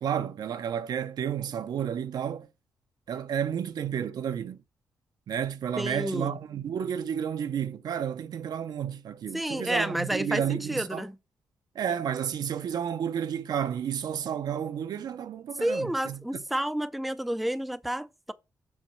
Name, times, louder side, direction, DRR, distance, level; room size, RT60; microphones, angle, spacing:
voice 1, 0.0-2.5 3.1-4.6 5.3-11.0 11.7-16.2, right 8 dB, 70° right, 0.7 m, -31 dB
voice 2, 5.8-6.4 9.3-11.2 15.6-18.3, right 1 dB, ahead, 0.4 m, -30 dB
7.2 x 5.3 x 6.2 m
wide cardioid pair, 155°, 7 cm